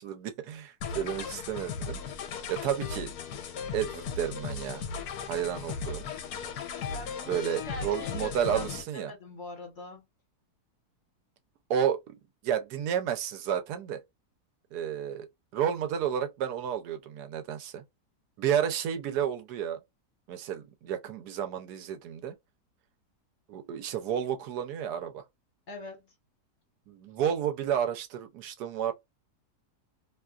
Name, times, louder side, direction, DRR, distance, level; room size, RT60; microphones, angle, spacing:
voice 1, 0.0-2.0 2.5-3.1 3.7-4.8 5.3-6.1 7.3-9.1 11.7-14.0 14.7-15.3 15.5-17.8 18.4-19.8 20.3-22.3 23.5-25.2 26.9-28.9, right 9 dB, 80° right, 1.2 m, -31 dB
sound 1, 0.8-8.8, left 6 dB, 80° left, 1.1 m, -37 dB
voice 2, 6.9-10.1 25.7-26.1, left 2 dB, 50° left, 1.4 m, -43 dB
2.9 x 2.3 x 2.3 m
omnidirectional pair, 1.7 m